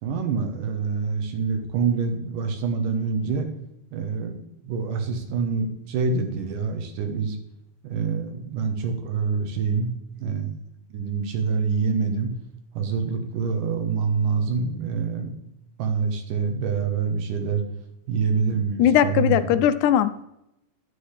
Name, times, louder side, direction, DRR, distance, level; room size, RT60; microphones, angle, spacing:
voice 1, 0.0-3.5 3.9-7.4 7.8-9.9 10.2-10.5 10.9-12.3 12.7-15.3 15.8-17.6 18.1-19.6, right 5 dB, 80° right, 5 dB, 2.7 m, -26 dB
voice 2, 18.8-20.2, left 10 dB, 80° left, 13 dB, 1.8 m, -19 dB
9.9 x 8.5 x 3.4 m, 0.83 s
omnidirectional pair, 3.7 m